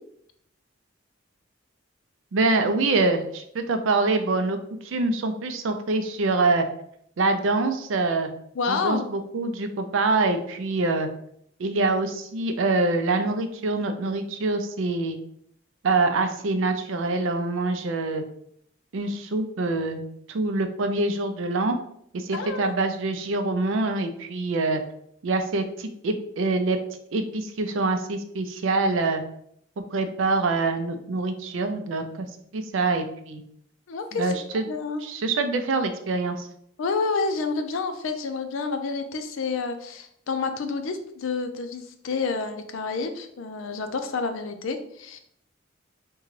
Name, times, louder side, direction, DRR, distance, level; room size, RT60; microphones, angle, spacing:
voice 1, 2.3-4.6 4.8-6.7 7.2-8.3 8.7-11.1 11.6-15.2 15.8-18.2 18.9-20.0 20.3-21.8 22.1-24.8 25.2-26.8 27.1-29.2 29.9-32.3 32.5-33.4 34.1-34.7 35.0-36.5, right 3 dB, 75° right, 7 dB, 0.4 m, -25 dB
voice 2, 8.6-9.1 22.3-22.8 33.9-34.4 34.7-35.0 36.8-45.2, left 4 dB, 80° left, 7 dB, 0.4 m, -29 dB
3.7 x 2.2 x 3.1 m, 0.69 s
head